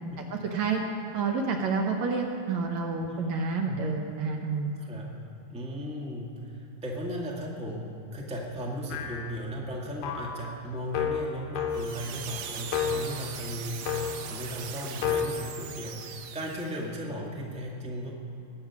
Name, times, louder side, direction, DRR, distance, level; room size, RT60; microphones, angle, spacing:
voice 1, 0.2-0.8 1.1-4.7, right 4 dB, 70° right, 2 dB, 2.0 m, -29 dB
voice 2, 4.8-5.2 5.5-7.8 8.1-18.2, equal, 5° right, -3 dB, 1.1 m, -36 dB
sound 1, 8.9-9.4 10.0-10.4 10.9-12.1 12.7-13.2 13.9-14.3 15.0-15.3, left 7 dB, 85° left, 2.8 m, -30 dB
sound 2, 11.7-16.9, right 7 dB, 90° right, 2.6 m, -40 dB
20.5 x 8.8 x 5.9 m, 2.9 s
omnidirectional pair, 3.8 m